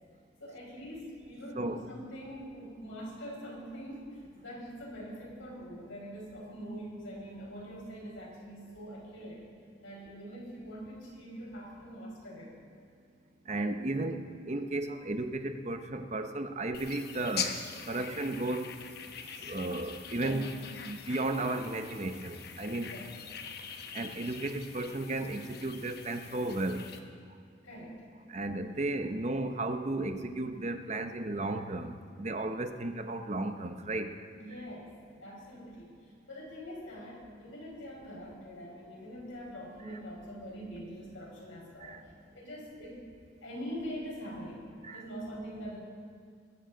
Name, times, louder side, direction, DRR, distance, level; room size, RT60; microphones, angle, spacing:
voice 1, 0.4-9.5 9.8-12.5 20.2-20.4 22.8-23.0 27.6-28.0 34.3-34.9 35.2-35.9 36.3-42.1 42.3-43.0 43.4-45.8, equal, 85° left, -3 dB, 5.1 m, -43 dB
voice 2, 13.5-14.2 14.5-17.5 17.9-18.7 19.4-20.5 20.8-22.9 23.9-26.8 28.3-34.1 41.8-42.0 44.8-45.0, right 2 dB, 35° right, 7 dB, 0.7 m, -34 dB
sound 1, 16.7-27.0, left 6 dB, 50° left, 1.0 m, -43 dB
21.5 x 13.5 x 3.8 m, 2.2 s
head